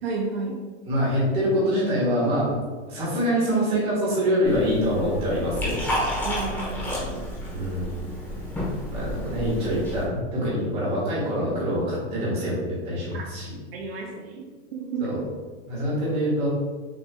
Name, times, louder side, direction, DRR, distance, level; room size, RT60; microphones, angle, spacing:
voice 1, 0.0-0.6 6.1-7.2 13.1-13.2 13.7-15.1, right 4 dB, 60° right, -1 dB, 0.7 m, -32 dB
voice 2, 0.9-2.5 2.9-5.8 7.5-7.9 8.9-13.5 15.0-15.2 15.7-16.5, equal, 15° right, -6 dB, 1.4 m, -25 dB
Liquid, 4.4-10.0, left 1 dB, 5° left, 0.9 m, -31 dB
6.3 x 3.1 x 2.2 m, 1.4 s
supercardioid pair, 165°, 35 cm